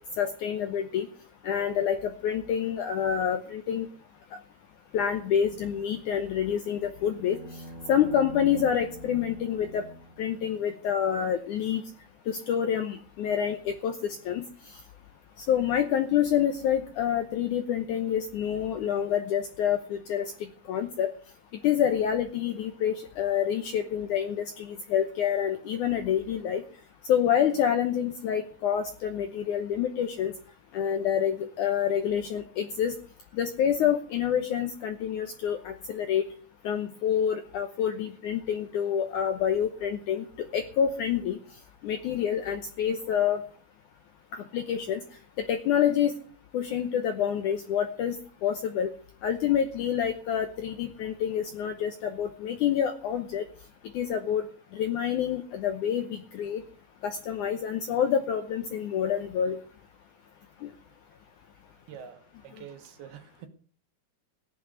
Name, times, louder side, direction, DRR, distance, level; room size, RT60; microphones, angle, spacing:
voice 1, 0.2-1.1 1.4-3.9 4.9-7.4 7.9-9.8 10.2-11.8 12.3-14.5 15.5-20.3 20.7-21.1 21.6-26.6 27.1-30.3 30.7-32.9 33.3-36.3 36.6-41.4 41.8-43.4 44.3-45.0 45.4-46.1 46.5-48.2 48.4-48.9 49.2-53.4 53.9-54.5 54.7-56.6 57.0-59.6 60.6-60.7, left 9 dB, 75° left, 8 dB, 1.8 m, -27 dB
sound 1, 7.0-11.3, right 1 dB, 20° right, 2.4 m, -45 dB
voice 2, 61.9-63.5, right 8 dB, 75° right, 8 dB, 3.2 m, -46 dB
15.0 x 10.5 x 6.4 m, 0.43 s
omnidirectional pair, 4.6 m